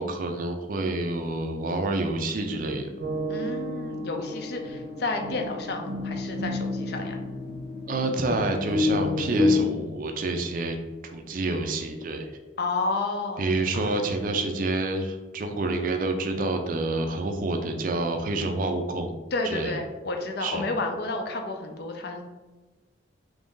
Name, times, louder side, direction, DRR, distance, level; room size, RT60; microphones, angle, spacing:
voice 1, 0.0-2.9 7.9-10.8 11.0-12.3 13.4-19.1 19.5-19.7 20.4-20.6, right 2 dB, 45° right, 4 dB, 0.4 m, -28 dB
sound 1, 3.0-9.6, left 2 dB, 80° right, 0.7 m, -29 dB
voice 2, 3.3-7.2 12.6-13.9 19.3-22.2, left 3 dB, 55° left, 4 dB, 0.4 m, -31 dB
3.1 x 2.6 x 3.6 m, 1.2 s
head